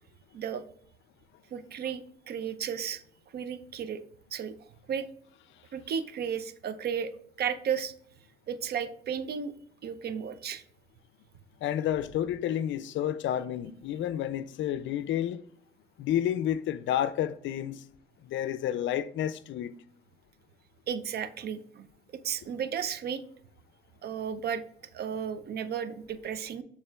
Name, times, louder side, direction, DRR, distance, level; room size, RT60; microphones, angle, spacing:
voice 1, 1.5-2.0 2.3-3.0 3.3-4.0 4.3-4.5 4.9-5.1 5.7-7.1 7.4-7.9 8.5-9.5 9.8-10.6 20.9-21.9 22.1-23.2 24.0-24.6 24.9-26.6, right 7 dB, 55° right, 0.5 m, -33 dB
voice 2, 11.6-15.4 16.0-17.8 18.2-19.7, left 11 dB, 70° left, 0.4 m, -30 dB
6.5 x 3.6 x 2.3 m
cardioid pair, 90°, 20 cm